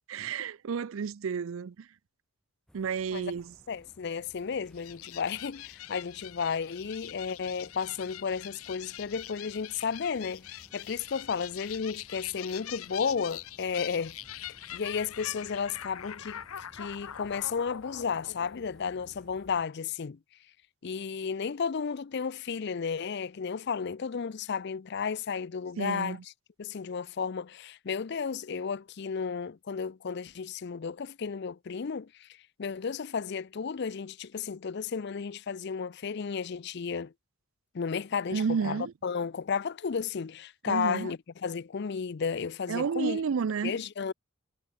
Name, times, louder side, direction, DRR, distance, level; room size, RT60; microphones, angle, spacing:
voice 1, 0.1-1.7 2.7-3.5 25.8-26.2 38.3-38.9 40.7-41.1 42.7-43.7, right 6 dB, 70° right, 0.4 m, -31 dB
sound 1, 2.7-19.7, equal, 5° left, 3.3 m, -59 dB
voice 2, 3.7-14.2 14.7-16.4 16.7-20.2 20.8-26.3 26.6-32.3 32.6-37.1 37.7-43.2 43.6-44.1, left 6 dB, 50° left, 0.5 m, -33 dB
sound 2, 4.7-19.4, left 11 dB, 85° left, 0.7 m, -44 dB
head